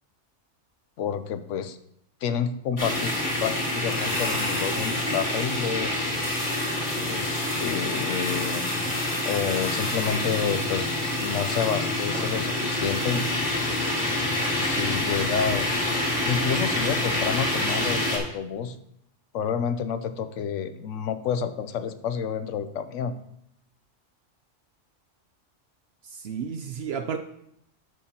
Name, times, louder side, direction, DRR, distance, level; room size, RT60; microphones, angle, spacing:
voice 1, 1.0-1.8 2.2-3.1 3.4-6.1 6.9-8.6 9.2-10.9 11.2-13.3 14.6-15.9 16.2-18.7 19.3-23.1, left 7 dB, 85° left, 11 dB, 1.0 m, -29 dB
sound 1, 2.8-18.2, left 1 dB, 40° left, 2.2 m, -27 dB
voice 2, 26.0-27.2, right 7 dB, 65° right, 8 dB, 0.8 m, -32 dB
12.5 x 6.0 x 2.9 m, 0.74 s
omnidirectional pair, 1.2 m